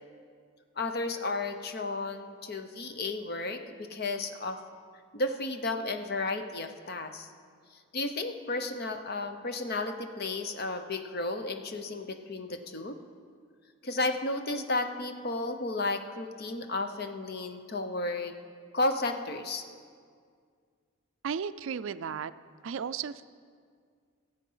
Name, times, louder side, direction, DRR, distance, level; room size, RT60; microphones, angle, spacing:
voice 1, 0.8-4.6 5.1-7.3 7.9-13.0 13.8-18.3 18.7-19.6, left 2 dB, 45° left, 7 dB, 0.8 m, -33 dB
voice 2, 21.2-22.3 22.6-23.3, right 7 dB, 65° right, 14 dB, 0.4 m, -34 dB
16.5 x 8.0 x 5.6 m, 2.1 s
head